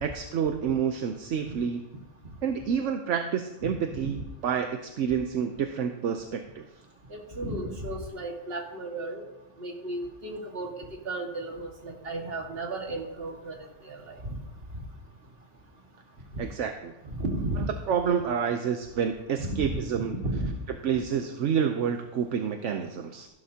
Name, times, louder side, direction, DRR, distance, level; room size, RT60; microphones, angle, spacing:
voice 1, 0.0-1.8 2.4-6.6 16.4-16.9 17.9-20.1 20.8-23.3, right 7 dB, 75° right, 6 dB, 1.1 m, -28 dB
voice 2, 7.1-9.2 9.6-13.6 13.8-14.3 17.0-17.7 19.4-19.7 20.0-20.5, right 2 dB, 50° right, 1 dB, 2.1 m, -34 dB
15.0 x 12.0 x 2.8 m, 0.98 s
omnidirectional pair, 1.3 m